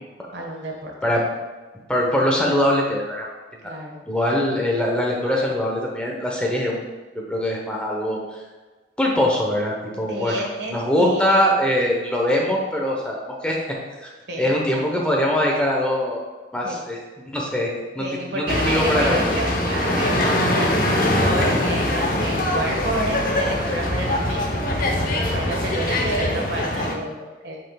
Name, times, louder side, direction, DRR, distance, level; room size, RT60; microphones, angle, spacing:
voice 1, 0.3-1.1 3.6-4.0 10.1-11.5 14.3-14.7 16.6-16.8 18.0-25.0 25.3-27.6, right 1 dB, 80° right, 0 dB, 1.5 m, -30 dB
voice 2, 1.9-3.3 3.6-3.7 4.1-6.9 7.3-8.4 9.0-13.6 14.0-14.1 14.4-16.2 16.5-17.0 17.3-18.1 18.3-19.4, left 1 dB, 5° left, -2 dB, 1.0 m, -22 dB
sound 1, 18.5-26.9, left 1 dB, 50° left, 0.9 m, -22 dB
9.2 x 5.7 x 2.4 m, 1.3 s
head